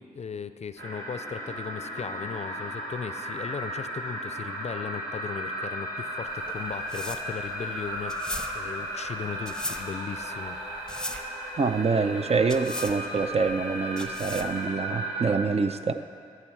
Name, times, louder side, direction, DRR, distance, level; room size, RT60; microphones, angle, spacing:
voice 1, 0.0-10.6, left 6 dB, 45° left, 12 dB, 0.5 m, -37 dB
sound 1, 0.8-15.3, equal, 75° right, 2.8 m, -35 dB
sound 2, 6.3-14.7, left 1 dB, 5° left, 0.8 m, -39 dB
voice 2, 11.6-15.9, right 4 dB, 45° right, 9 dB, 0.5 m, -26 dB
14.0 x 6.6 x 4.6 m, 2.2 s
supercardioid pair, 45°, 15 cm